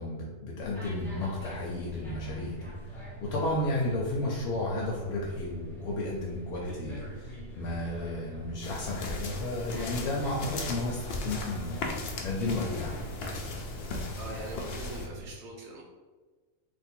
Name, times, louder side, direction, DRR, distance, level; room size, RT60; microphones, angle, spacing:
voice 1, 0.0-11.8 12.2-13.1, left 2 dB, 80° left, -3 dB, 1.1 m, -33 dB
sound 1, 0.6-15.3, right 1 dB, ahead, 0.5 m, -43 dB
sound 2, 8.6-15.1, left 2 dB, 65° left, 0.6 m, -37 dB
voice 2, 14.2-15.8, right 1 dB, 55° right, -2 dB, 0.9 m, -42 dB
3.0 x 2.5 x 4.3 m, 1.3 s
omnidirectional pair, 1.6 m